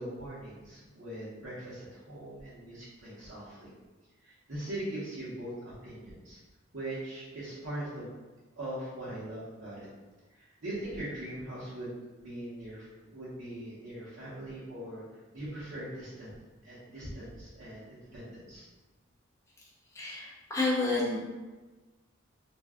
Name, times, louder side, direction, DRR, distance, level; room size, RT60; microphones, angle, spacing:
voice 1, 0.0-3.7 4.2-6.4 6.7-8.1 8.6-9.9 10.3-15.0 15.3-16.3 16.6-18.7, right 1 dB, 65° right, -12 dB, 1.0 m, -41 dB
voice 2, 19.9-21.2, left 2 dB, 15° left, -7 dB, 0.6 m, -29 dB
2.6 x 2.2 x 3.5 m, 1.2 s
head